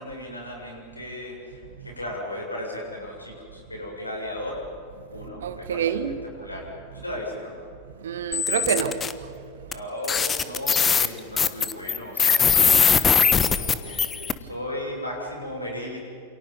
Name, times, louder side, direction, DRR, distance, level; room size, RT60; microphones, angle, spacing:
voice 1, 0.0-4.6 5.1-6.0 6.4-6.7 6.9-7.5 9.7-16.0, left 1 dB, 85° left, 7.7 m, -36 dB
voice 2, 5.4-6.1 8.0-9.3, right 8 dB, 60° right, 1.8 m, -27 dB
sound 1, 8.3-9.1 9.7-9.8 10.0-14.3, left 6 dB, 20° left, 1.2 m, -20 dB
29.0 x 28.5 x 5.4 m
figure-of-eight pair, 90°, 0 cm